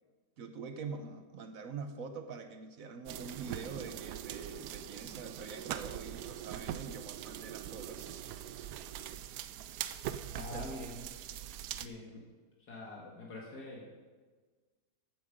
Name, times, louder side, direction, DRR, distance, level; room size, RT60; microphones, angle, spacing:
voice 1, 0.4-8.7 10.5-10.8 11.1-11.4, right 5 dB, 60° right, 8 dB, 1.2 m, -45 dB
sound 1, 3.1-11.9, right 11 dB, 80° right, 1.2 m, -42 dB
voice 2, 10.3-11.0 11.8-12.2 12.7-13.9, left 2 dB, 70° left, -2 dB, 2.3 m, -44 dB
14.0 x 9.1 x 5.1 m, 1.4 s
omnidirectional pair, 1.8 m